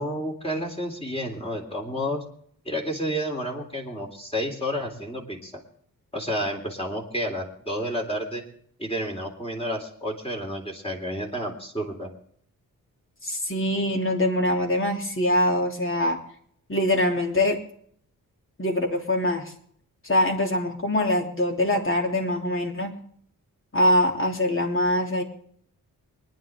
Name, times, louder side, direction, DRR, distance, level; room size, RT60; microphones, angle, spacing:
voice 1, 0.0-2.2 2.7-5.5 6.1-8.4 8.8-12.1, equal, 15° left, 1 dB, 3.6 m, -30 dB
voice 2, 13.2-16.2 16.7-17.6 18.6-19.5 20.0-22.9 23.7-25.2, left 1 dB, 35° left, 2 dB, 3.2 m, -23 dB
24.0 x 10.5 x 3.7 m, 0.63 s
cardioid pair, 85°, 35 cm